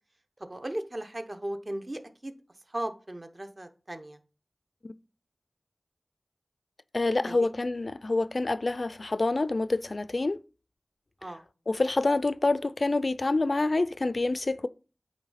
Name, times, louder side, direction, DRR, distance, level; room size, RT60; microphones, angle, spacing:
voice 1, 0.4-2.3 2.7-4.2 7.3-7.5 11.2-11.5, right 1 dB, 50° right, 0.9 m, -37 dB
voice 2, 6.9-10.4 11.7-14.7, left 2 dB, 70° left, 0.3 m, -27 dB
8.7 x 3.1 x 5.7 m
wide cardioid pair, 40°, 0 cm